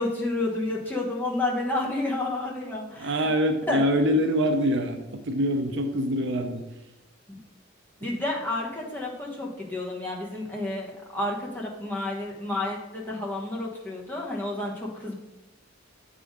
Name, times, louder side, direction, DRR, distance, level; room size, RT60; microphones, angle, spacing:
voice 1, 0.0-3.3 3.7-3.8 7.3-7.4 8.0-15.1, left 2 dB, 10° left, -3 dB, 1.2 m, -30 dB
voice 2, 3.0-6.6 8.0-8.1, equal, 60° right, 6 dB, 0.6 m, -25 dB
8.0 x 3.7 x 4.9 m, 1.0 s
head